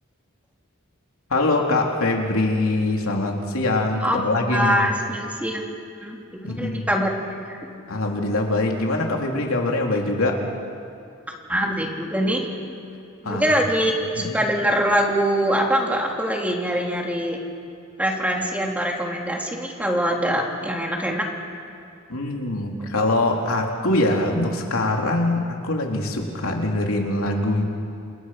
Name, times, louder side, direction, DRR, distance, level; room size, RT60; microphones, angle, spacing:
voice 1, 1.3-4.8 6.4-6.9 7.9-10.4 13.2-13.5 14.1-14.4 22.1-27.6, left 2 dB, 90° left, 1 dB, 3.4 m, -23 dB
voice 2, 4.0-5.6 6.0-6.2 6.4-7.1 7.4-7.6 11.5-12.5 13.2-17.4 18.0-21.3, equal, 5° right, 0 dB, 3.2 m, -23 dB
29.5 x 28.0 x 5.8 m, 2.6 s
head